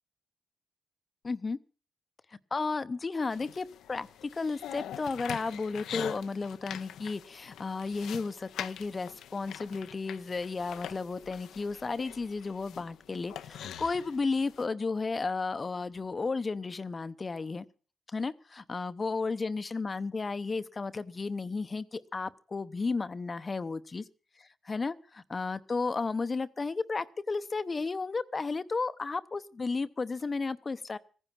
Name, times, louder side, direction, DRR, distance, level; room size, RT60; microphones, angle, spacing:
voice 1, 1.2-1.6 2.5-17.6 18.1-24.0 24.6-31.0, left 4 dB, 35° left, 12 dB, 0.8 m, -33 dB
sound 1, 3.3-14.7, left 10 dB, 85° left, 0.7 m, -44 dB
16.0 x 10.0 x 7.2 m, 0.39 s
cardioid pair, 75°, 0 cm